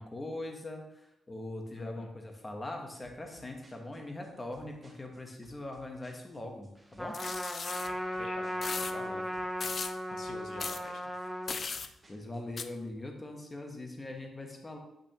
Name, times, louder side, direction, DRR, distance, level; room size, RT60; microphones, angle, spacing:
voice 1, 0.0-7.2 11.8-14.8, left 2 dB, 20° left, 2 dB, 1.0 m, -41 dB
voice 2, 1.8-2.2 7.7-9.3 9.7-11.1, left 4 dB, 65° left, 4 dB, 0.8 m, -48 dB
sound 1, 3.0-12.6, right 1 dB, 20° right, 2.1 m, -61 dB
Trumpet, 7.0-11.6, equal, ahead, 0.6 m, -36 dB
sound 2, 7.1-7.9 8.6-8.9 9.6-9.9 10.6-10.8 11.5-11.9 12.6-12.7, left 5 dB, 40° left, 0.4 m, -37 dB
8.6 x 5.8 x 2.9 m, 0.87 s
wide cardioid pair, 155°, 0 cm